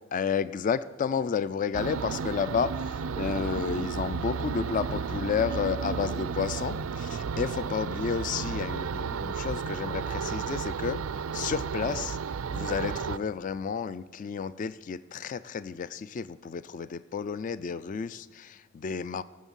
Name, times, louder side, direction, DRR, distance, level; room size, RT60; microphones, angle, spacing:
voice 1, 0.1-11.0 11.3-12.2 12.5-19.2, left 6 dB, 40° left, 16 dB, 0.3 m, -31 dB
sound 1, 1.7-13.2, right 5 dB, 90° right, 0.4 m, -33 dB
15.0 x 6.4 x 5.4 m, 1.4 s
head